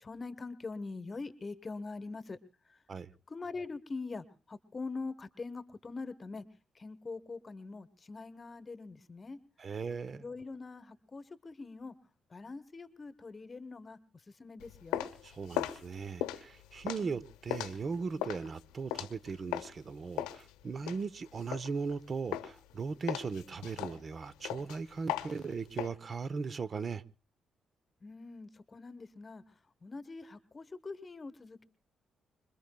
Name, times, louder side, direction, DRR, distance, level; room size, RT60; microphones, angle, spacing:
voice 1, 0.0-2.4 3.3-6.4 6.8-9.4 10.1-11.9 12.3-14.0 14.4-15.1 28.0-29.4 29.8-31.6, left 3 dB, 35° left, 1.0 m, -43 dB
voice 2, 9.6-10.2 15.2-27.0, right 5 dB, 50° right, 0.7 m, -38 dB
sound 1, 14.6-19.8 20.2-22.0 22.3-22.7 23.1-25.9, left 12 dB, 85° left, 0.8 m, -38 dB
25.5 x 22.5 x 2.2 m
hypercardioid pair, 50°, 0 cm